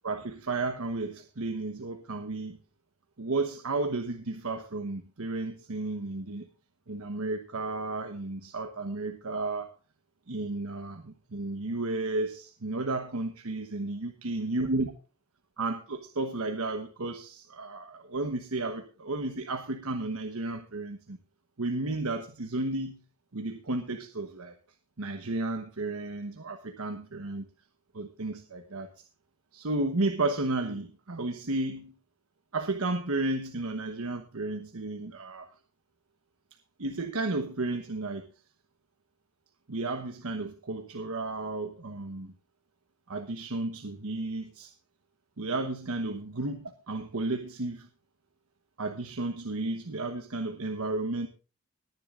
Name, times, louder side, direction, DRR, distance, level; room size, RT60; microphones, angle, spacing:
voice 1, 0.0-2.6 3.2-6.5 6.9-9.7 10.3-14.9 15.6-21.2 21.6-23.0 23.3-24.5 25.0-27.4 27.9-28.9 29.5-31.9 32.5-35.5 36.8-38.3 39.7-42.3 43.1-44.7 45.4-47.9 48.8-51.3, right 2 dB, 80° right, 7 dB, 1.1 m, -33 dB
20.0 x 10.5 x 2.5 m, 0.34 s
head